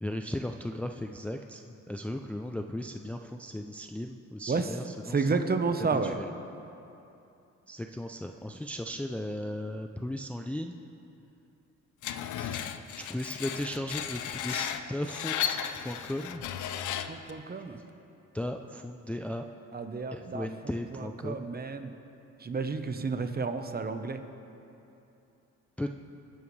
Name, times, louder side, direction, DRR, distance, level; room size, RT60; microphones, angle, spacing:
voice 1, 0.0-5.4 5.9-6.3 7.7-10.8 12.4-16.4 17.7-17.8 18.3-19.5 20.1-21.5 25.8-25.9, left 1 dB, 5° left, 4 dB, 0.5 m, -36 dB
voice 2, 5.1-6.2 17.1-17.8 19.7-20.5 20.9-21.9 22.4-24.2, right 4 dB, 30° right, 8 dB, 1.0 m, -31 dB
Screech, 12.0-17.3, left 9 dB, 75° left, 0.7 m, -35 dB
22.5 x 10.5 x 3.3 m, 2.8 s
cardioid pair, 90°, 30 cm